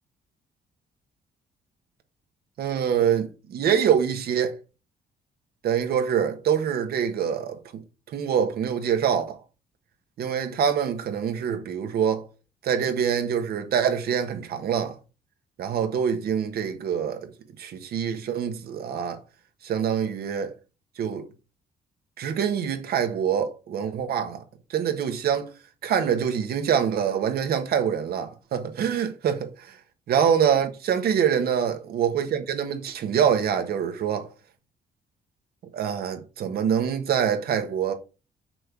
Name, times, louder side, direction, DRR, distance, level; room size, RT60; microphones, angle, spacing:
voice 1, 2.6-4.6 5.6-7.8 8.1-9.4 10.2-12.3 12.6-15.0 15.6-17.3 17.6-19.2 19.6-20.5 21.0-21.3 22.2-24.4 24.7-25.5 25.8-29.7 30.1-34.3 35.7-37.9, right 8 dB, 75° right, 1.5 m, -25 dB
6.2 x 4.6 x 6.7 m
cardioid pair, 120°, 16 cm